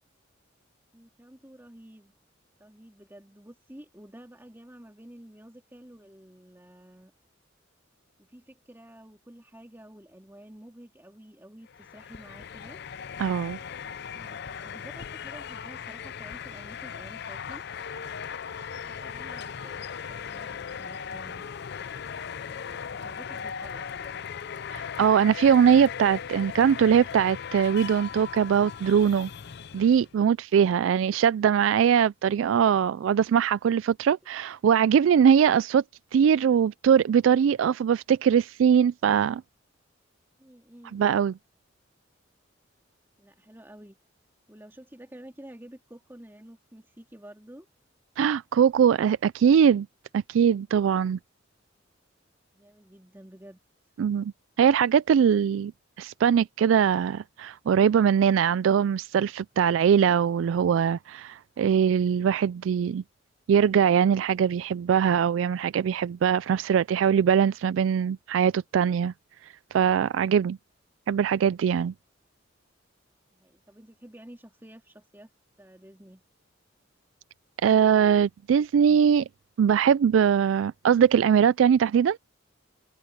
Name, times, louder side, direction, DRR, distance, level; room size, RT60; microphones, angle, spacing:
voice 1, 0.9-2.1 2.6-7.1 8.2-12.8 13.8-17.6 18.9-21.5 22.5-24.3 30.5-31.0 40.4-41.0 43.2-44.0 44.5-47.7 52.5-53.9 73.3-75.3 75.6-76.2, right 1 dB, 10° right, 3.0 m, -50 dB
sound 1, 11.7-30.1, left 7 dB, 55° left, 0.5 m, -38 dB
voice 2, 13.2-13.6 24.7-29.3 29.7-35.8 36.1-39.4 40.9-41.3 48.2-49.9 50.1-51.2 54.0-54.3 54.6-55.7 56.0-63.0 63.5-69.1 69.7-70.6 71.1-71.9 77.6-79.3 79.6-82.2, right 8 dB, 75° right, 0.3 m, -21 dB
head